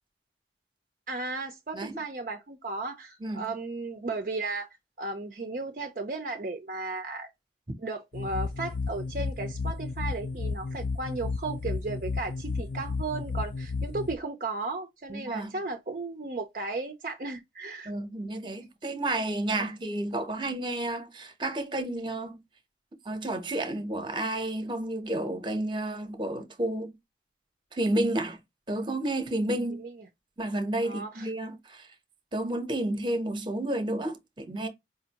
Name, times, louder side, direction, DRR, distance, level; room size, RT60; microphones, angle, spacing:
voice 1, 1.1-4.7 5.0-7.3 7.8-17.9 19.6-19.7 29.7-29.9 30.8-31.3, right 3 dB, 45° right, 0.5 m, -35 dB
sound 1, 8.1-14.2, left 4 dB, 50° left, 0.4 m, -33 dB
voice 2, 15.1-15.5 17.8-22.4 23.0-26.9 27.7-28.4 28.7-29.8 30.4-31.9 32.3-34.7, right 1 dB, 25° right, 0.8 m, -31 dB
4.9 x 2.6 x 2.8 m
head